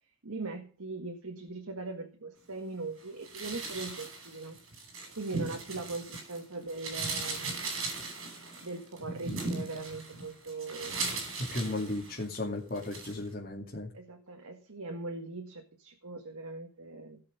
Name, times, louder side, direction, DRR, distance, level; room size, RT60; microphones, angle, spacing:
voice 1, 0.2-4.6 5.2-7.8 8.6-11.2 13.9-17.2, right 3 dB, 85° right, 4 dB, 1.8 m, -40 dB
sound 1, 3.2-6.4 6.7-12.4 12.7-13.2, right 3 dB, 65° right, 5.9 m, -38 dB
voice 2, 11.4-13.9, left 2 dB, 40° left, -4 dB, 2.7 m, -35 dB
17.5 x 6.7 x 5.3 m, 0.40 s
head